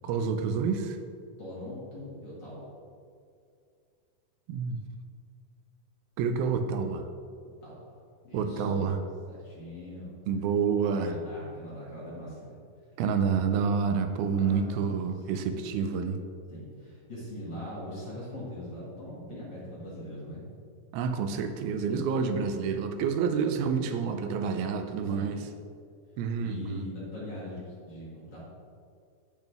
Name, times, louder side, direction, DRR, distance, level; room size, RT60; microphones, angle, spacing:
voice 1, 0.0-1.0 4.5-4.8 6.2-7.0 8.3-9.0 10.3-11.2 13.0-16.2 20.9-25.5 26.2-26.9, right 6 dB, 90° right, 8 dB, 2.5 m, -28 dB
voice 2, 1.4-2.7 7.6-7.8 8.2-8.9 9.3-10.1 10.9-12.6 14.2-14.8 15.5-15.7 16.5-20.5 23.2-23.4 25.1-25.4 26.4-28.4, left 1 dB, 35° left, -8 dB, 2.2 m, -41 dB
8.7 x 8.2 x 3.5 m, 2.3 s
omnidirectional pair, 4.2 m